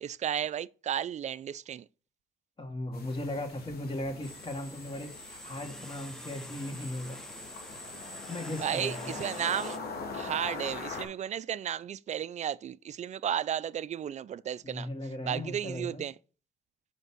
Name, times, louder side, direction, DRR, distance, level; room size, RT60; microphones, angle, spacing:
voice 1, 0.0-1.8 8.6-9.8 10.1-14.9 15.3-16.1, right 9 dB, 45° right, 0.4 m, -33 dB
voice 2, 2.6-7.2 8.3-9.2 14.6-16.1, left 1 dB, 30° left, 2.1 m, -37 dB
sound 1, 2.9-11.0, left 4 dB, 65° left, 2.0 m, -42 dB
sound 2, 4.2-9.8, equal, 5° left, 0.8 m, -46 dB
5.3 x 5.2 x 6.2 m
cardioid pair, 75°, 17 cm